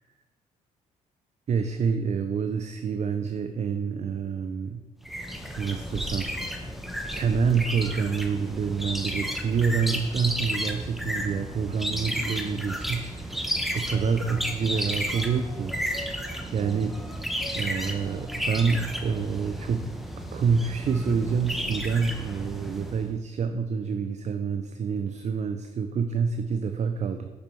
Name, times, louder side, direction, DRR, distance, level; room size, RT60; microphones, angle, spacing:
voice 1, 1.5-4.8 5.6-6.4 7.1-17.3 17.5-19.9 20.3-27.3, right 6 dB, 45° right, 7 dB, 0.4 m, -27 dB
sound 1, 5.0-23.1, equal, ahead, 0.9 m, -33 dB
6.0 x 5.9 x 3.2 m, 1.2 s
supercardioid pair, 55°, 17 cm